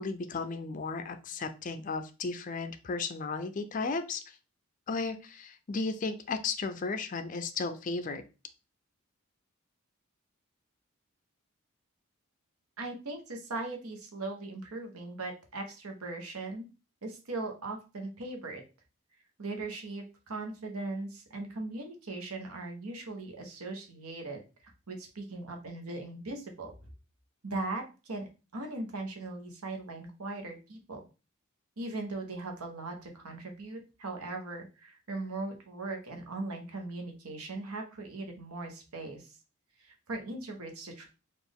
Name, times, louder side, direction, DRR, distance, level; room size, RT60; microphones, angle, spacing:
voice 1, 0.0-4.2 4.9-8.2, left 4 dB, 35° left, 9 dB, 0.4 m, -34 dB
voice 2, 12.8-16.6 17.0-18.6 19.4-26.7 27.4-28.3 28.5-31.0 31.8-39.4 39.8-41.1, right 2 dB, 85° right, 3 dB, 1.0 m, -39 dB
4.2 x 2.5 x 3.5 m, 0.31 s
head